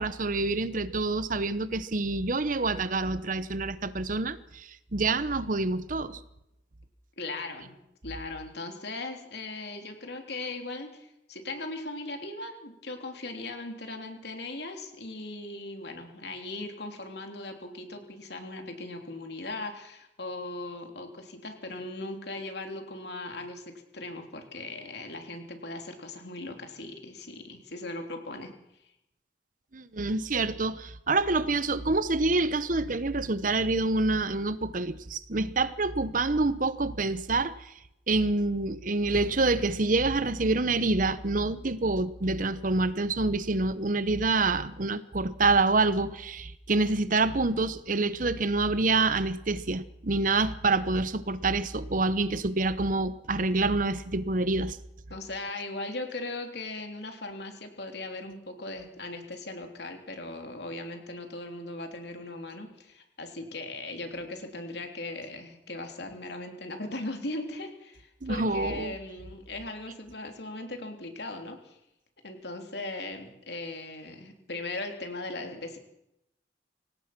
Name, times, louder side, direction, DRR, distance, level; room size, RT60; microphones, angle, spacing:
voice 1, 0.0-6.2 29.7-37.7 38.1-54.8 68.2-68.9, right 3 dB, 45° right, 0.9 m, -27 dB
voice 2, 7.2-7.7 8.0-28.5 55.1-71.8 72.2-75.8, left 2 dB, 60° left, 3.4 m, -38 dB
25.5 x 18.5 x 6.1 m
head